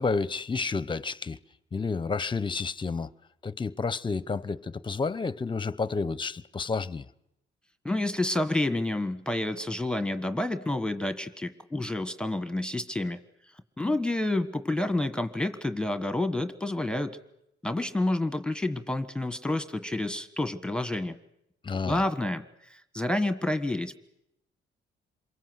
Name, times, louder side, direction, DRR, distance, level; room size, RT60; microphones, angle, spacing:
voice 1, 0.0-1.4 1.7-3.1 3.4-7.1 21.6-22.0, left 4 dB, 25° left, 0.9 m, -30 dB
voice 2, 7.8-13.2 13.8-17.2 17.6-21.2 21.8-24.0, left 2 dB, 5° left, 1.5 m, -29 dB
27.5 x 22.5 x 8.0 m
cardioid pair, 90°, 20 cm